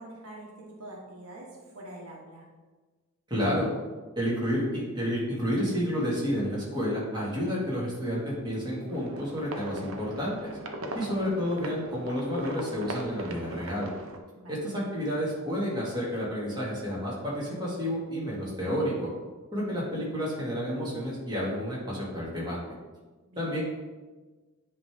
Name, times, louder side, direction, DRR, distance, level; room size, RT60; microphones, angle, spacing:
voice 1, 0.0-2.4 14.3-14.6 19.5-19.6 23.3-23.5, right 1 dB, 80° right, -3 dB, 1.5 m, -45 dB
voice 2, 3.3-3.7 4.2-10.5 10.9-13.9 14.5-19.1 19.5-22.6 23.4-23.6, equal, 20° right, -6 dB, 2.0 m, -30 dB
sound 1, 8.9-14.2, right 1 dB, 65° right, 0.7 m, -39 dB
9.9 x 3.4 x 3.6 m, 1.3 s
head